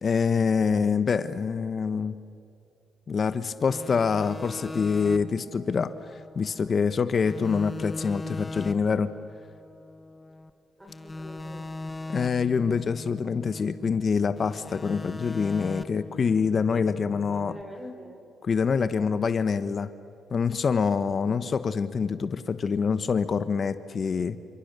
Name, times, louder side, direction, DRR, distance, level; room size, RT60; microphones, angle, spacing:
voice 1, 0.0-2.2 3.1-9.1 12.1-17.5 18.4-19.9 20.3-24.4, left 5 dB, 45° left, 12 dB, 1.1 m, -26 dB
sound 1, 3.7-6.9 7.2-10.5 10.9-14.1 14.4-17.6, left 2 dB, 15° left, 1.5 m, -40 dB
voice 2, 10.8-11.8 17.2-18.3 21.1-21.5, left 1 dB, 10° right, 3 dB, 6.6 m, -44 dB
29.5 x 26.5 x 6.8 m, 2.6 s
cardioid pair, 90°, 0 cm